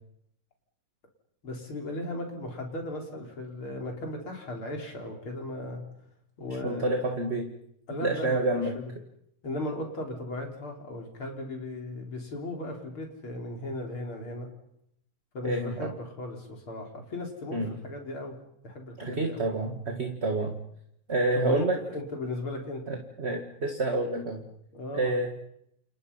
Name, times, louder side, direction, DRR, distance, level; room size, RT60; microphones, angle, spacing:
voice 1, 1.4-5.8 6.4-7.1 7.9-8.9 9.4-14.5 15.3-18.4 18.6-19.4 21.3-23.0 24.7-25.3, left 2 dB, 80° left, 2 dB, 5.1 m, -36 dB
voice 2, 6.5-7.5 8.0-8.8 15.4-15.9 17.5-17.8 19.0-20.6 21.1-21.8 22.9-24.4 24.9-25.3, right 2 dB, 30° right, 4 dB, 2.1 m, -28 dB
29.0 x 29.0 x 5.7 m, 0.78 s
omnidirectional pair, 2.3 m